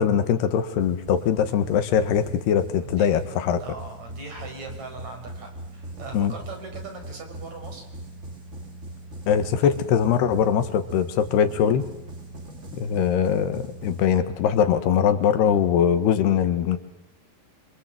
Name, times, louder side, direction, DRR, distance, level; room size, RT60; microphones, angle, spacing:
voice 1, 0.0-3.6 6.1-6.3 9.3-11.9 12.7-16.8, left 8 dB, 85° left, 9 dB, 3.6 m, -22 dB
sound 1, 0.8-14.7, right 1 dB, 25° right, 1.7 m, -40 dB
voice 2, 2.8-3.3 3.6-7.9 9.6-9.7, right 3 dB, 45° right, 4 dB, 6.4 m, -40 dB
27.0 x 26.5 x 7.8 m, 0.86 s
omnidirectional pair, 4.6 m